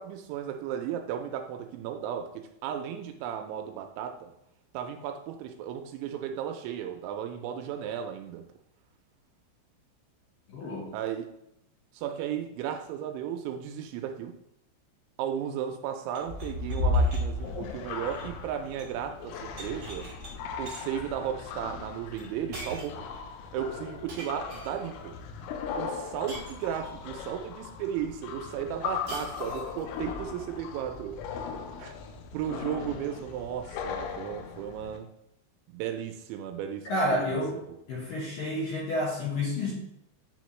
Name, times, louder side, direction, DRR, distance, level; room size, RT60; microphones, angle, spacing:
voice 1, 0.0-4.3 4.7-8.4 10.9-11.3 11.9-14.3 15.2-20.1 20.6-23.0 23.5-25.2 25.8-31.2 31.8-31.9 32.3-35.1 35.7-37.4, right 9 dB, 85° right, 5 dB, 2.8 m, -35 dB
voice 2, 10.5-10.9 36.9-37.5 37.9-39.7, left 1 dB, 70° left, -6 dB, 2.3 m, -29 dB
sound 1, 16.1-19.0 19.3-20.3 20.7-21.0 22.2-22.3 22.5-23.1 24.1-24.9 26.3-27.1 29.1-29.8, right 2 dB, 60° right, 1.3 m, -45 dB
sound 2, 16.2-35.0, left 3 dB, 85° left, 3.1 m, -36 dB
9.2 x 4.2 x 3.1 m, 0.81 s
omnidirectional pair, 5.5 m